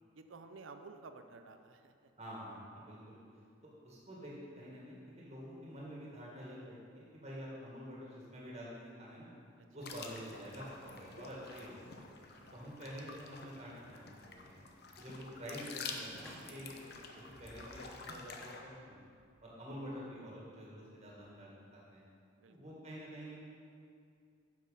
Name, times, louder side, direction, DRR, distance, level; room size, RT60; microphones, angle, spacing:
voice 1, 0.1-2.1 2.9-3.1 7.3-7.4 9.6-9.7 12.4-12.6 22.4-22.6, right 4 dB, 80° right, 8 dB, 0.6 m, -54 dB
voice 2, 2.2-3.2 3.8-9.3 9.7-12.0 12.5-14.6 15.0-19.0 19.4-21.5 21.9-22.0 22.5-23.4, equal, 35° right, -5 dB, 1.9 m, -48 dB
sound 1, 9.8-18.6, left 4 dB, 55° left, 0.8 m, -49 dB
Squeak, 10.6-12.8 13.2-13.6 13.8-13.9 14.3-14.4 14.7-14.8 15.1-16.9 17.7-17.8, equal, 5° left, 2.0 m, -61 dB
sound 2, 17.0-20.3 20.6-21.6, equal, 15° right, 1.3 m, -67 dB
8.4 x 6.4 x 5.6 m, 2.3 s
head